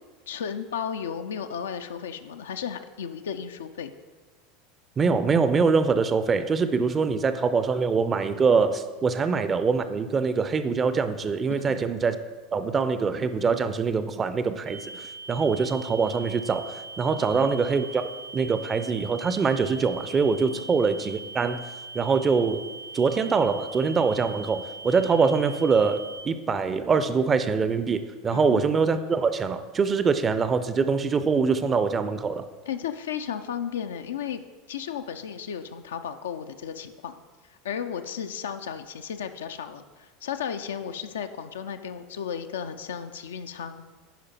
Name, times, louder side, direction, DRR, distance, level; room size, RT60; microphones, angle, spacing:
voice 1, 0.3-3.9 11.5-11.9 17.2-17.5 20.5-20.6 28.3-28.6 32.7-34.4 34.7-37.2 37.5-43.8, left 8 dB, 65° left, 8 dB, 0.4 m, -34 dB
voice 2, 5.0-12.2 12.5-21.6 21.9-22.6 22.9-32.4, right 5 dB, 25° right, 11 dB, 0.5 m, -24 dB
sound 1, 14.7-26.2, right 3 dB, 75° right, 1.7 m, -41 dB
10.0 x 5.0 x 4.2 m, 1.3 s
figure-of-eight pair, 75°, 0 cm